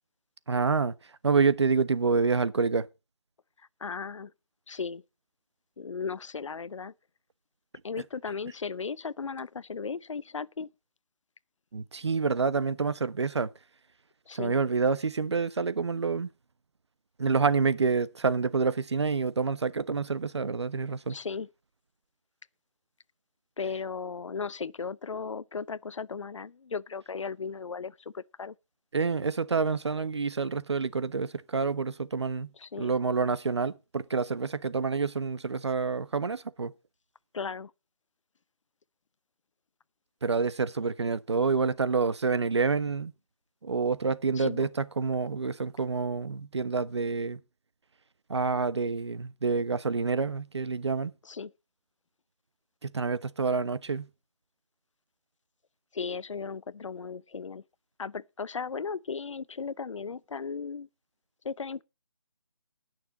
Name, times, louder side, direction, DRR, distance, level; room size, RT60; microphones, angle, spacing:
voice 1, 0.5-0.9 1.2-2.9 11.7-13.5 14.3-16.3 17.2-21.2 28.9-32.5 32.8-36.7 40.2-43.1 43.6-47.4 48.3-51.1 52.8-54.1, right 4 dB, 65° right, 1.0 m, -28 dB
voice 2, 3.8-4.3 4.7-5.0 5.8-6.9 7.8-10.7 14.3-14.5 21.1-21.5 23.6-28.5 32.6-32.9 37.3-37.7 44.4-44.7 51.3-51.5 55.9-57.6 58.0-60.9 61.4-61.8, left 5 dB, 90° left, 0.6 m, -36 dB
18.5 x 6.6 x 4.0 m
hypercardioid pair, 175°, 16 cm